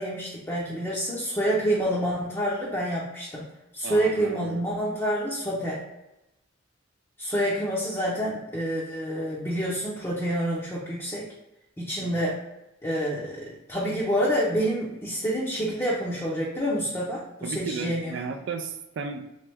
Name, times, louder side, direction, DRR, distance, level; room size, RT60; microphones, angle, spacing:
voice 1, 0.0-3.5 3.7-5.8 7.2-11.3 11.8-12.4 12.8-18.2, equal, 15° left, -6 dB, 0.6 m, -28 dB
voice 2, 3.8-4.7 12.0-12.1 17.4-19.2, right 5 dB, 60° right, 6 dB, 0.4 m, -34 dB
3.3 x 3.1 x 3.3 m, 0.91 s
head